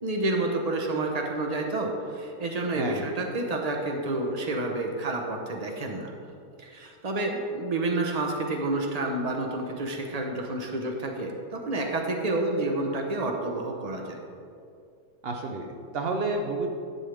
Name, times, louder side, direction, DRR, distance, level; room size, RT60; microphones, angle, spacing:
voice 1, 0.0-6.1 6.6-14.2, right 2 dB, 35° right, 2 dB, 0.7 m, -29 dB
voice 2, 2.8-3.1 15.2-16.7, right 3 dB, 80° right, 2 dB, 0.5 m, -30 dB
11.0 x 7.6 x 3.4 m, 2.4 s
omnidirectional pair, 1.9 m